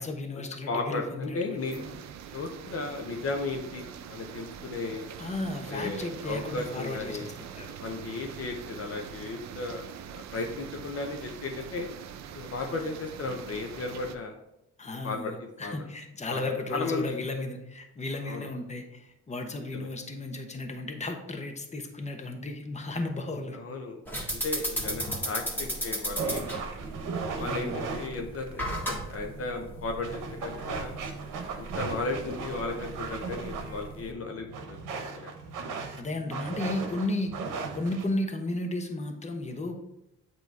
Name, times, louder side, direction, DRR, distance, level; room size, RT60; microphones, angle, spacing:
voice 1, 0.0-1.9 5.2-7.8 14.8-23.6 27.3-27.8 36.0-37.3 37.7-39.7, left 2 dB, 20° left, 4 dB, 1.0 m, -34 dB
voice 2, 0.7-2.0 2.3-5.1 5.7-7.3 7.8-9.8 10.1-11.9 12.3-14.3 15.0-15.7 16.3-16.4 16.7-17.2 18.3-18.5 19.7-19.9 23.5-24.0 24.3-26.6 27.4-30.9 31.5-35.3, left 3 dB, 50° left, 2 dB, 0.8 m, -35 dB
sound 1, 1.5-14.2, right 8 dB, 65° right, 0.6 m, -43 dB
sound 2, 24.1-34.1, equal, 5° left, 1.7 m, -36 dB
sound 3, 26.2-38.2, right 4 dB, 85° right, 1.0 m, -37 dB
8.0 x 3.0 x 4.7 m, 0.88 s
cardioid pair, 90°, 30 cm